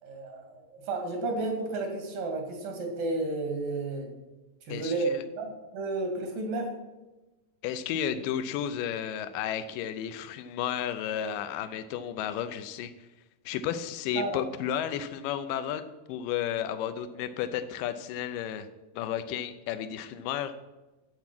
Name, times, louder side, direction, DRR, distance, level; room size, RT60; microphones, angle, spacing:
voice 1, 0.0-4.1 4.7-5.1 5.4-6.7 14.2-14.4, right 2 dB, 85° right, 3 dB, 3.8 m, -32 dB
voice 2, 4.7-5.2 7.6-12.9 13.5-18.7 19.0-20.5, left 9 dB, 90° left, 10 dB, 2.3 m, -33 dB
12.5 x 8.3 x 6.0 m, 1.1 s
omnidirectional pair, 3.8 m